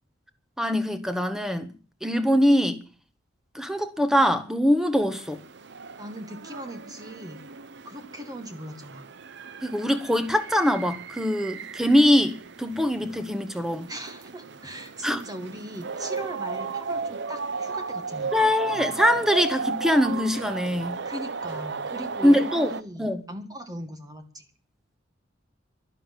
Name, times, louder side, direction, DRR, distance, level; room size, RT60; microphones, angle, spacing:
voice 1, 0.6-1.7 2.0-2.8 3.5-5.4 9.6-13.9 15.0-15.2 18.3-21.0 22.2-22.7 23.0-23.2, equal, 5° right, 1.5 m, -23 dB
sound 1, 5.1-22.8, right 5 dB, 65° right, 0.8 m, -35 dB
voice 2, 6.0-7.4 7.9-9.1 13.9-18.4 21.0-24.5, right 1 dB, 20° right, 1.8 m, -39 dB
12.0 x 11.5 x 9.2 m
head